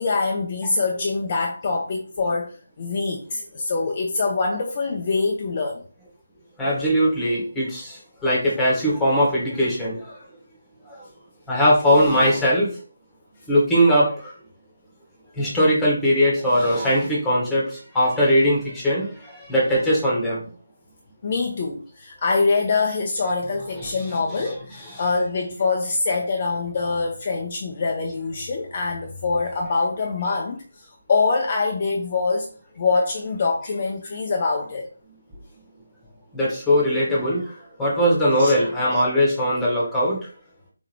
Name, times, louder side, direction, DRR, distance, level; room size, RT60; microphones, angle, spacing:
voice 1, 0.0-5.8 21.2-32.5 32.8-34.9 38.4-38.5, left 4 dB, 35° left, 1 dB, 0.6 m, -24 dB
voice 2, 6.6-10.1 10.9-11.1 11.5-12.7 13.5-14.3 15.4-20.5 23.5-25.1 33.6-33.7 36.3-40.2, equal, 5° left, -5 dB, 1.5 m, -21 dB
4.3 x 3.8 x 3.1 m, 0.39 s
figure-of-eight pair, 155°, 0 cm